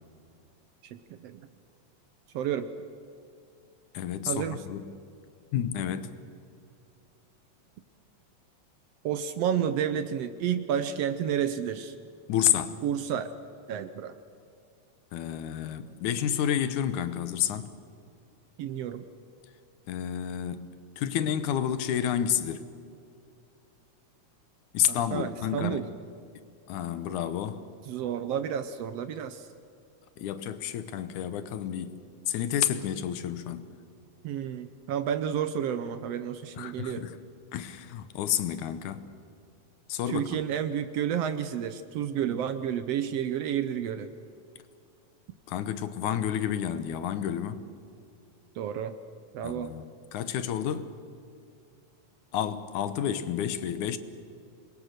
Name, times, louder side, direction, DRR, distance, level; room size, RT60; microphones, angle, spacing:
voice 1, 0.8-1.4 2.3-2.7 4.3-4.6 9.0-11.9 12.8-13.3 13.7-14.2 18.6-19.0 25.1-25.8 27.9-29.5 34.2-37.0 40.1-44.1 48.6-49.0 49.3-49.7, right 9 dB, 70° right, 1.6 m, -30 dB
voice 2, 3.9-4.9 5.5-6.1 12.3-12.8 15.1-17.7 19.9-22.7 24.7-25.8 26.7-27.6 30.2-32.0 32.3-33.7 36.6-37.2 37.5-39.0 39.9-40.3 45.5-47.7 49.4-50.9 52.3-54.0, left 10 dB, 85° left, 2.5 m, -30 dB
27.0 x 21.5 x 6.6 m
omnidirectional pair, 3.4 m